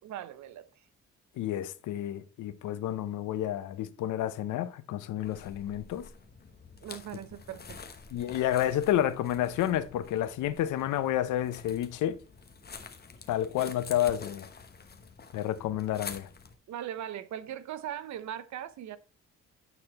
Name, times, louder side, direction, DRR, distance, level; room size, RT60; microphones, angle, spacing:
voice 1, 0.0-0.7 6.8-7.8 16.7-19.0, right 10 dB, 70° right, 0.7 m, -39 dB
voice 2, 1.4-6.1 8.1-12.2 13.3-14.5 15.3-16.3, left 12 dB, 80° left, 0.8 m, -30 dB
sound 1, 5.2-16.6, left 5 dB, 30° left, 1.1 m, -48 dB
9.0 x 4.2 x 4.1 m
cardioid pair, 90°, 30 cm